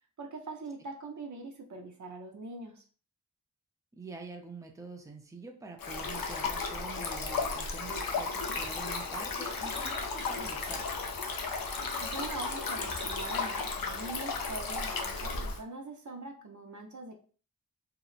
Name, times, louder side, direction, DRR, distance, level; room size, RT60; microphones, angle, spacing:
voice 1, 0.2-2.8 12.0-17.2, right 3 dB, 60° right, 3 dB, 0.5 m, -43 dB
voice 2, 3.9-10.9, right 3 dB, 10° right, 1 dB, 0.5 m, -46 dB
Stream, 5.8-15.6, left 4 dB, 75° left, 0.5 m, -34 dB
sound 1, 8.4-14.8, equal, 30° right, 0.9 m, -49 dB
2.8 x 2.0 x 2.3 m, 0.40 s
wide cardioid pair, 45°, 34 cm